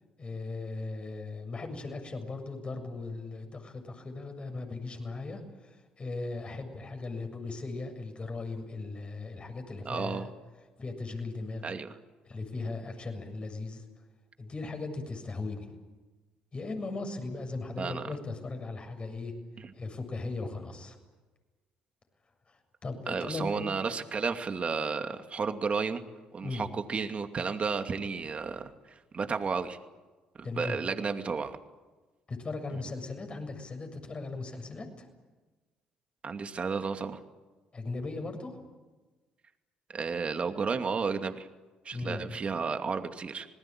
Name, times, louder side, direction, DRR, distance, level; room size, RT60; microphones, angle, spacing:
voice 1, 0.2-10.3 10.8-11.6 12.2-13.8 14.4-15.7 16.5-19.3 19.7-21.0 22.5-23.7 26.4-26.7 30.4-30.8 32.3-35.1 37.7-38.7 41.9-42.4, left 3 dB, 35° left, 5 dB, 7.2 m, -38 dB
voice 2, 9.9-10.3 11.6-11.9 17.8-18.1 19.6-19.7 23.1-26.0 26.3-28.7 29.1-29.8 30.6-31.6 36.2-37.2 39.9-41.5 41.8-43.5, right 5 dB, 40° right, 7 dB, 2.5 m, -32 dB
27.0 x 19.5 x 9.1 m, 1.2 s
hypercardioid pair, 60°, 3 cm